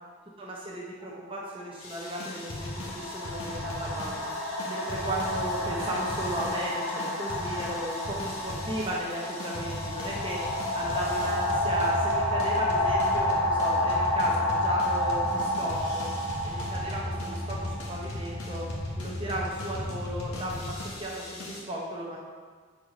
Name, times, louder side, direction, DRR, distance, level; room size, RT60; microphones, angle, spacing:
voice 1, 0.4-4.3 4.7-10.4 10.7-16.1 16.4-18.6 19.0-22.2, right 1 dB, 25° right, -3 dB, 0.8 m, -35 dB
sound 1, 1.0-1.2 2.2-18.8, left 1 dB, 15° left, 1.8 m, -30 dB
sound 2, 1.8-21.6, left 1 dB, 85° left, 1.5 m, -37 dB
6.8 x 4.8 x 5.1 m, 1.5 s
head